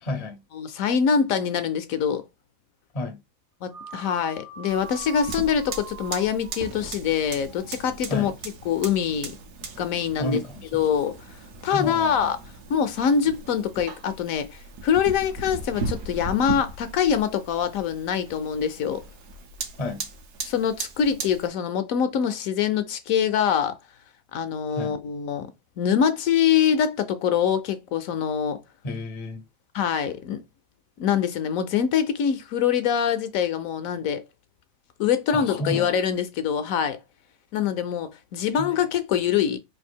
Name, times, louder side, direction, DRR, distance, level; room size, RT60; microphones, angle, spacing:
voice 1, 0.0-0.4 2.9-3.2 8.1-8.3 10.2-10.9 11.7-12.3 19.8-20.1 24.8-25.0 28.8-29.4 35.3-35.9 38.5-38.7, left 2 dB, 45° left, 0.5 m, -31 dB
voice 2, 0.6-2.2 3.6-8.3 8.7-9.3 9.8-10.4 10.7-11.1 11.6-12.4 12.7-19.0 20.4-23.8 24.3-25.5 25.8-28.6 29.7-30.4 31.0-34.2 35.0-37.0 37.5-39.6, left 8 dB, 70° left, 0.9 m, -24 dB
sound 1, 3.7-8.2, right 6 dB, 60° right, 0.5 m, -44 dB
Fire, 4.7-21.5, right 4 dB, 85° right, 1.4 m, -38 dB
3.4 x 2.6 x 4.3 m
omnidirectional pair, 1.7 m